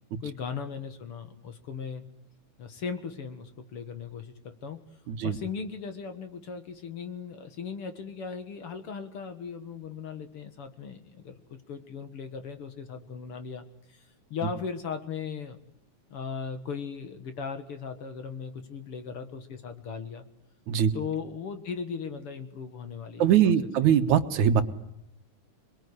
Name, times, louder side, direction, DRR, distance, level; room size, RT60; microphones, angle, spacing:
voice 1, 0.2-2.1 2.6-4.8 5.2-14.0 14.3-15.6 16.1-20.3 20.9-23.5, left 6 dB, 55° left, 8 dB, 2.3 m, -38 dB
voice 2, 5.1-5.4 20.7-20.9 23.2-24.6, right 9 dB, 80° right, 8 dB, 2.7 m, -22 dB
27.5 x 21.5 x 9.9 m, 0.81 s
omnidirectional pair, 3.4 m